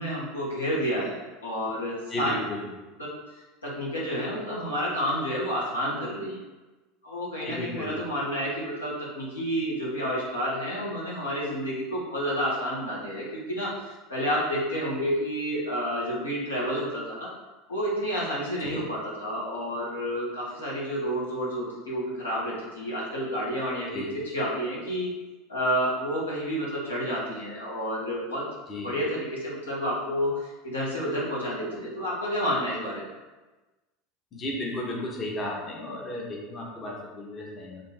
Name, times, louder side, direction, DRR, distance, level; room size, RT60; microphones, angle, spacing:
voice 1, 0.0-2.3 3.0-3.1 3.6-6.4 7.0-17.3 17.7-25.1 25.5-28.4 28.8-33.1, equal, 85° left, -6 dB, 1.1 m, -30 dB
voice 2, 2.1-2.7 7.4-8.0 18.7-18.8 23.9-24.1 28.7-29.0 34.3-37.8, left 1 dB, 30° left, -2 dB, 1.0 m, -34 dB
3.9 x 2.6 x 3.9 m, 1.2 s
figure-of-eight pair, 75°, 0 cm